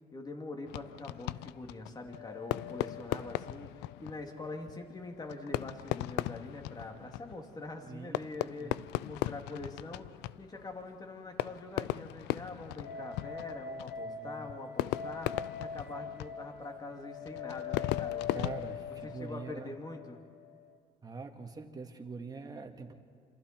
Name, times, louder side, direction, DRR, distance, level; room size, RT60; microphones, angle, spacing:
voice 1, 0.1-10.1 10.4-18.5 19.0-20.2, left 2 dB, 25° left, 3 dB, 2.9 m, -44 dB
Fireworks, 0.7-19.5, left 16 dB, 90° left, 0.5 m, -39 dB
sound 1, 2.1-5.3 5.5-5.6 12.8-20.8, left 6 dB, 65° left, 1.9 m, -43 dB
voice 2, 7.8-8.2 8.6-8.9 14.0-14.5 18.3-19.7 21.0-22.9, right 4 dB, 25° right, 3 dB, 2.1 m, -44 dB
27.0 x 26.5 x 4.6 m, 2.3 s
cardioid pair, 110°, 17 cm